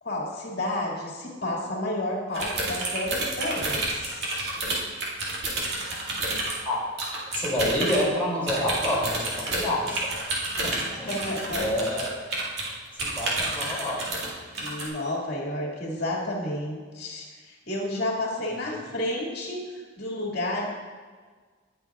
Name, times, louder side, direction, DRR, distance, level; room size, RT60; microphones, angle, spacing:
voice 1, 0.0-4.4 10.9-11.7 14.6-19.6 20.0-20.7, left 1 dB, 55° left, -3 dB, 2.3 m, -31 dB
sound 1, 2.3-6.6 7.0-8.0 8.5-12.7 13.0-14.3 14.5-14.8, right 2 dB, 55° right, 2.3 m, -29 dB
voice 2, 7.3-10.2 10.6-11.2 11.6-12.1 12.9-14.3 18.4-18.9, left 1 dB, 10° left, -7 dB, 2.7 m, -28 dB
19.0 x 7.3 x 2.4 m, 1.5 s
head